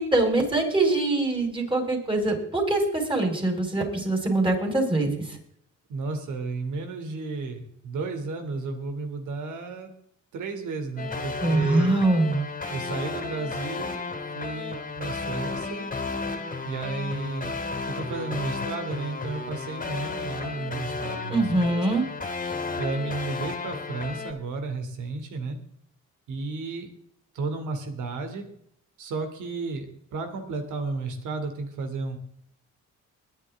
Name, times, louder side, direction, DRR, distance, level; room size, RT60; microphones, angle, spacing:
voice 1, 0.0-5.4 11.4-12.4 21.3-22.1, right 2 dB, 15° right, 2 dB, 5.3 m, -23 dB
voice 2, 5.9-9.9 10.3-11.9 12.7-14.0 14.3-15.8 16.6-17.5 17.9-21.8 22.8-25.6 26.3-26.9 27.3-28.4 29.0-32.2, right 3 dB, 80° right, 6 dB, 3.1 m, -33 dB
sound 1, 11.0-24.3, left 4 dB, 25° left, 2.8 m, -33 dB
21.5 x 9.9 x 3.7 m, 0.69 s
cardioid pair, 90°, 30 cm